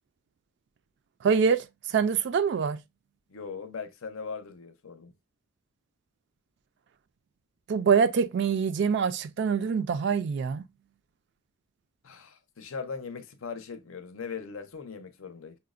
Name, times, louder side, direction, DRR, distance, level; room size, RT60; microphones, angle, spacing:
voice 1, 1.2-2.8 7.7-10.6, right 6 dB, 55° right, 0.3 m, -25 dB
voice 2, 3.3-5.1 12.0-15.6, left 5 dB, 75° left, 0.6 m, -39 dB
5.6 x 2.1 x 2.4 m
head